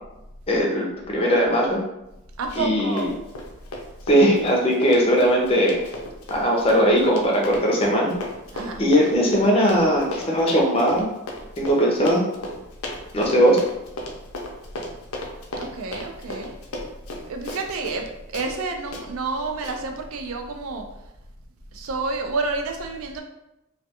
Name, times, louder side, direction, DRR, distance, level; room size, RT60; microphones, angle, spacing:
voice 1, 0.5-1.8 2.6-3.1 4.1-5.8 6.3-8.1 8.8-11.1 11.6-12.2 13.1-13.6, equal, 25° left, -2 dB, 0.5 m, -19 dB
voice 2, 2.4-3.1 8.5-8.8 15.6-16.5 17.3-18.1 18.3-20.8 21.7-23.2, right 3 dB, 80° right, 4 dB, 0.4 m, -29 dB
Run, 2.5-2.7 3.0-18.1 18.3-18.5 18.9-19.0 19.6-19.8, left 1 dB, 85° left, 0.5 m, -35 dB
2.2 x 2.2 x 2.7 m, 0.91 s
head